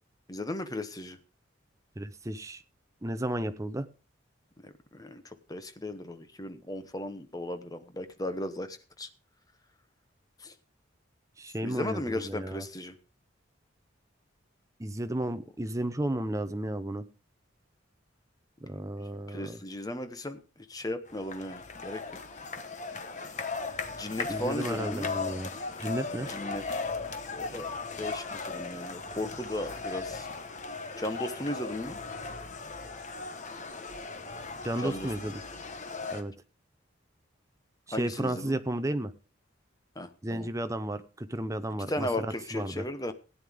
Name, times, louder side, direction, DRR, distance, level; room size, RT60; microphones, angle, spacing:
voice 1, 0.3-1.2 4.6-9.1 10.4-10.5 11.6-13.0 19.3-20.4 20.7-22.2 24.0-25.1 26.3-26.6 27.4-27.7 28.0-30.3 31.0-32.0 34.8-35.1 37.9-38.6 40.0-40.5 41.9-43.1, left 1 dB, 20° left, 10 dB, 0.9 m, -36 dB
voice 2, 2.0-2.6 3.0-3.9 11.4-12.7 14.8-17.0 18.6-19.6 24.3-25.5 25.8-26.3 34.6-35.4 36.1-36.3 37.9-39.1 40.2-42.9, right 1 dB, 15° right, 10 dB, 0.7 m, -33 dB
sound 1, 21.1-36.2, left 4 dB, 35° left, 1.1 m, -37 dB
16.5 x 9.3 x 3.6 m, 0.32 s
head